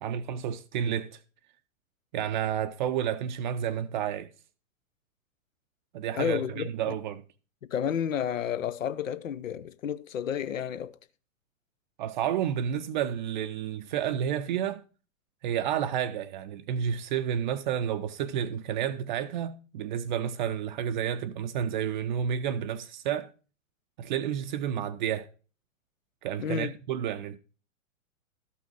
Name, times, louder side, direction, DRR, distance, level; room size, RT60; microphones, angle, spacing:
voice 1, 0.0-1.2 2.1-4.3 5.9-7.2 12.0-14.8 15.4-23.3 24.0-25.3 26.2-27.4, right 9 dB, 35° right, 0.5 m, -30 dB
voice 2, 6.1-6.9 7.7-11.0 26.4-26.7, left 8 dB, 70° left, 0.8 m, -31 dB
13.0 x 5.6 x 4.6 m
figure-of-eight pair, 105°, 41 cm